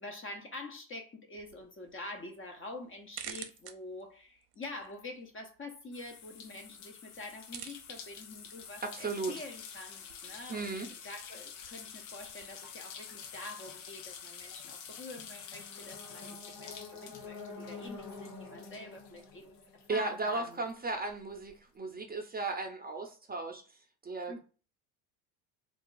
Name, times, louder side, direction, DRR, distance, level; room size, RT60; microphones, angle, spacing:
voice 1, 0.0-10.8 11.0-20.6 24.3-24.4, left 2 dB, 25° left, 0.7 m, -46 dB
sound 1, 1.3-12.6, right 10 dB, 55° right, 0.7 m, -53 dB
sound 2, 5.9-20.0 20.3-21.5, left 7 dB, 75° left, 0.8 m, -48 dB
voice 2, 8.8-9.3 10.5-10.9 19.9-23.6 24.0-24.3, right 3 dB, 20° right, 0.6 m, -35 dB
sound 3, 15.4-20.5, left 3 dB, 45° left, 1.3 m, -48 dB
2.5 x 2.3 x 3.8 m
hypercardioid pair, 70°, 48 cm